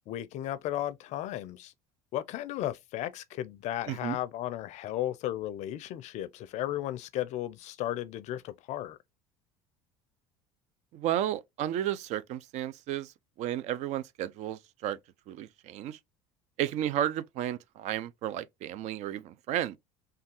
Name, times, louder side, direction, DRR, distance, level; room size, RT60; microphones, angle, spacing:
voice 1, 0.1-1.7 2.1-9.0, left 13 dB, 55° left, 0.4 m, -35 dB
voice 2, 3.9-4.2 10.9-13.1 13.4-15.0 15.3-16.0 16.6-19.8, right 11 dB, 55° right, 0.4 m, -33 dB
3.3 x 2.3 x 2.9 m
hypercardioid pair, 75°, 14 cm